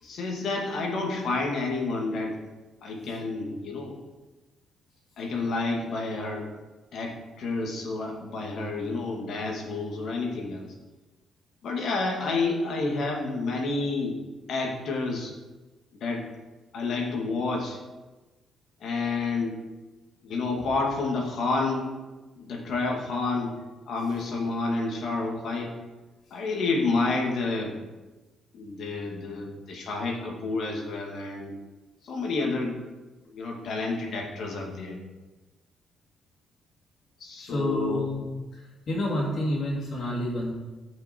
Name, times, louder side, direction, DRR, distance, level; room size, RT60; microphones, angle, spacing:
voice 1, 0.0-2.4 2.8-4.0 5.2-6.5 6.9-10.6 11.6-14.2 14.5-15.3 15.9-16.3 16.7-17.8 18.8-19.6 20.2-21.9 22.4-23.6 23.9-25.7 26.3-27.8 28.5-31.6 32.0-32.8 33.3-35.0 37.2-38.1, left 3 dB, 70° left, 0 dB, 2.3 m, -29 dB
voice 2, 37.4-38.3 38.9-40.5, left 1 dB, 50° left, -5 dB, 2.6 m, -28 dB
13.5 x 6.0 x 4.6 m, 1.2 s
cardioid pair, 110°, 0 cm